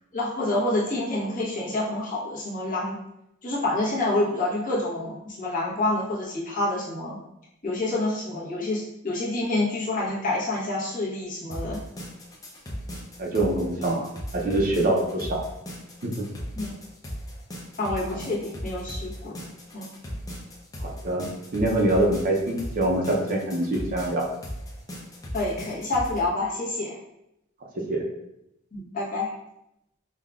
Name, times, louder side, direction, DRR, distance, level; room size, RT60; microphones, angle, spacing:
voice 1, 0.1-3.0 3.4-7.2 7.6-11.8 16.6-16.7 17.8-19.4 19.7-19.9 25.3-27.0 28.7-29.3, left 2 dB, 40° left, -5 dB, 1.0 m, -27 dB
sound 1, 11.5-26.2, equal, 20° left, 0.6 m, -37 dB
voice 2, 13.2-14.1 14.3-15.4 16.0-16.2 20.8-24.3 27.9-28.0, right 1 dB, 45° right, -1 dB, 0.6 m, -24 dB
5.4 x 2.3 x 2.4 m, 0.84 s
head